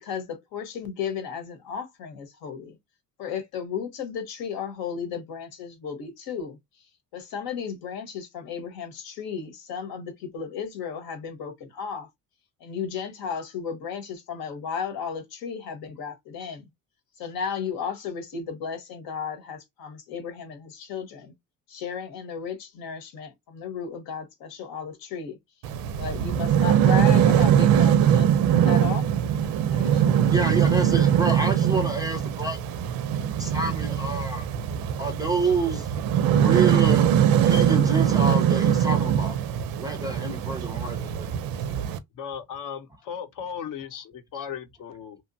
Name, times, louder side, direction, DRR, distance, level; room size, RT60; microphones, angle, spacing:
voice 1, 0.0-2.8 3.2-6.6 7.1-12.1 12.6-16.6 17.2-21.3 21.7-25.4 26.0-29.0 29.7-30.3, left 7 dB, 85° left, 1.0 m, -34 dB
sound 1, 25.6-42.0, right 9 dB, 75° right, 0.5 m, -22 dB
voice 2, 30.3-32.6 33.4-34.5 35.0-35.9 36.3-37.1 37.4-39.4 39.8-41.3, right 3 dB, 10° right, 0.4 m, -28 dB
voice 3, 42.1-45.2, left 7 dB, 65° left, 0.7 m, -36 dB
2.8 x 2.1 x 2.6 m
cardioid pair, 145°, 35 cm